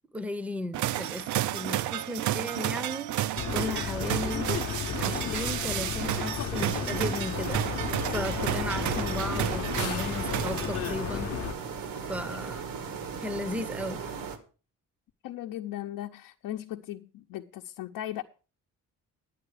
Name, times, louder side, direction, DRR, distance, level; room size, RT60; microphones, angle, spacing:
voice 1, 0.1-4.5 5.0-7.7 8.1-11.4 12.1-12.6 13.2-14.1, left 1 dB, 5° right, 0.6 m, -35 dB
sound 1, 0.7-11.2, right 13 dB, 65° right, 0.5 m, -32 dB
sound 2, 3.4-11.5, left 9 dB, 45° left, 0.7 m, -33 dB
sound 3, 7.3-14.4, right 6 dB, 85° right, 1.6 m, -37 dB
voice 2, 15.2-18.2, left 13 dB, 85° left, 0.7 m, -37 dB
11.0 x 9.6 x 4.8 m
cardioid pair, 165°, 32 cm